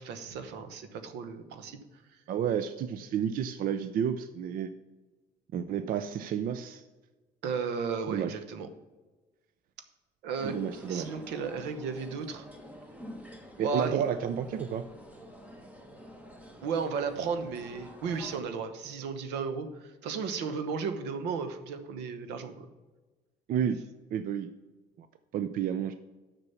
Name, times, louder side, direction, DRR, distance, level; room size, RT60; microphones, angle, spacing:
voice 1, 0.0-1.8 7.4-8.7 10.2-12.5 13.6-14.0 16.6-22.7, right 5 dB, 85° right, 9 dB, 1.0 m, -34 dB
voice 2, 2.3-4.7 5.5-6.8 8.1-8.4 10.4-11.1 13.6-14.9 23.5-23.8 24.1-24.5 25.0-25.1 25.3-26.0, right 8 dB, 55° right, 11 dB, 0.5 m, -31 dB
sound 1, 10.4-18.4, equal, 10° right, 1.2 m, -48 dB
6.7 x 6.0 x 7.0 m, 1.2 s
cardioid pair, 110°, 17 cm